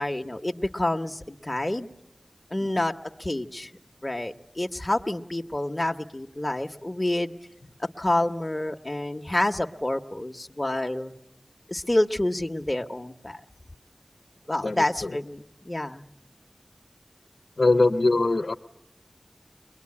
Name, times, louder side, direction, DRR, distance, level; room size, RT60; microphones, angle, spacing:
voice 1, 0.0-1.9 2.5-2.9 3.2-3.7 4.0-7.3 7.8-11.1 11.7-13.4 14.5-16.0, left 1 dB, 30° left, 4 dB, 1.1 m, -28 dB
voice 2, 14.6-15.2 17.6-18.5, left 2 dB, 70° left, 4 dB, 0.9 m, -22 dB
22.5 x 22.0 x 9.7 m, 0.81 s
wide cardioid pair, 55°, 0 cm